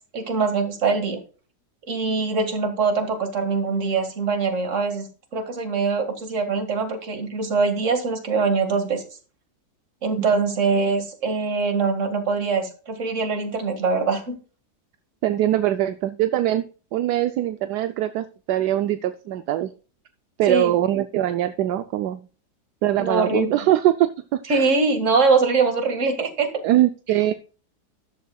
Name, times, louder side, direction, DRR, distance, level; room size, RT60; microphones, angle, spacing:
voice 1, 0.1-1.2 1.9-5.1 5.3-9.0 10.0-14.4 20.5-20.7 23.0-23.6 24.5-26.5, right 4 dB, 50° right, 6 dB, 2.2 m, -23 dB
voice 2, 15.2-16.7 16.9-19.7 20.4-22.2 22.8-24.7 26.6-27.3, right 13 dB, 80° right, 10 dB, 1.2 m, -22 dB
13.0 x 11.0 x 2.3 m, 0.37 s
omnidirectional pair, 1.7 m